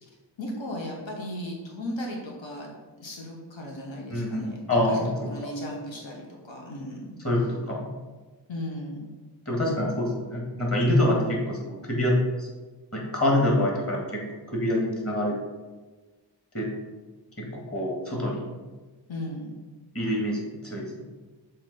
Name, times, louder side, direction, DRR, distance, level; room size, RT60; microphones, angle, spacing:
voice 1, 0.4-7.1 8.5-9.1 19.1-19.6, left 1 dB, 90° left, -1 dB, 1.1 m, -36 dB
voice 2, 4.1-4.9 5.4-5.5 7.2-7.8 9.5-12.5 12.9-14.2 14.5-15.4 16.5-16.7 17.4-18.4 19.9-20.8, left 1 dB, 30° left, -3 dB, 2.0 m, -26 dB
7.0 x 2.9 x 5.5 m, 1.3 s
wide cardioid pair, 55°, 44 cm